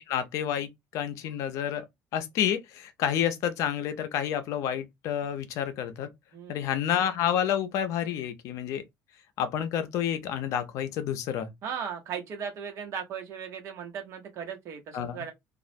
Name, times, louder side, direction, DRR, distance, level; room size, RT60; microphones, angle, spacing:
voice 1, 0.1-1.8 2.1-6.1 6.5-8.8 9.4-11.5 14.9-15.2, left 9 dB, 65° left, 0.5 m, -29 dB
voice 2, 6.3-6.7 11.6-15.3, right 7 dB, 55° right, 0.9 m, -37 dB
2.3 x 2.0 x 2.6 m
supercardioid pair, 105°, 6 cm